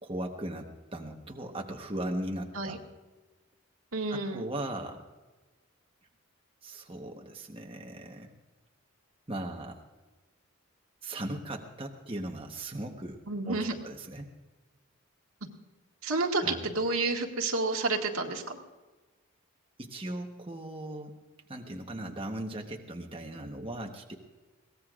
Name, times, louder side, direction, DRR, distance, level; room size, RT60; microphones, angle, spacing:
voice 1, 0.0-2.8 4.1-5.0 6.6-8.3 9.3-9.8 11.0-14.3 16.4-16.7 19.8-21.2 21.5-24.1, right 1 dB, 25° right, 2 dB, 1.1 m, -38 dB
voice 2, 3.9-4.5 13.3-13.7 16.0-18.6, right 3 dB, 80° right, 1 dB, 1.9 m, -30 dB
22.5 x 18.0 x 2.5 m, 1.2 s
head